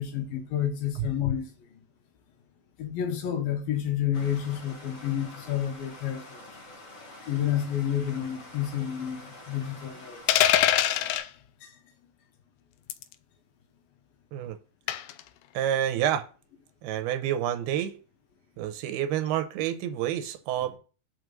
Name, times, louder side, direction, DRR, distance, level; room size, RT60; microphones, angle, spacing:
voice 1, 0.0-1.5 2.8-6.4 7.2-10.2 11.6-11.7, left 10 dB, 70° left, 2.9 m, -30 dB
Stream, 4.1-11.2, left 1 dB, 35° left, 1.3 m, -47 dB
sound 1, 10.3-11.3 12.9-13.1 14.9-15.2, left 12 dB, 85° left, 2.6 m, -22 dB
voice 2, 15.5-16.3 16.8-18.0 18.6-20.7, right 10 dB, 85° right, 2.8 m, -28 dB
6.2 x 5.2 x 6.5 m
omnidirectional pair, 4.5 m